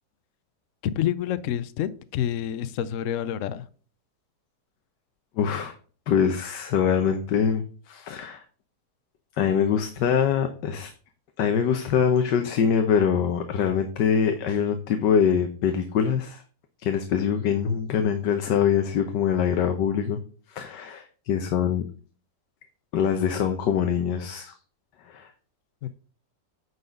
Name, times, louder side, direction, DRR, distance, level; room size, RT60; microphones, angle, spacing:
voice 1, 0.8-3.6 25.8-25.9, left 10 dB, 65° left, 0.8 m, -28 dB
voice 2, 5.4-5.8 6.1-8.4 9.4-10.9 11.4-16.4 16.8-20.2 20.5-21.8 22.9-24.5 25.1-25.3, left 7 dB, 90° left, 1.5 m, -24 dB
9.2 x 4.1 x 5.1 m
omnidirectional pair, 1.8 m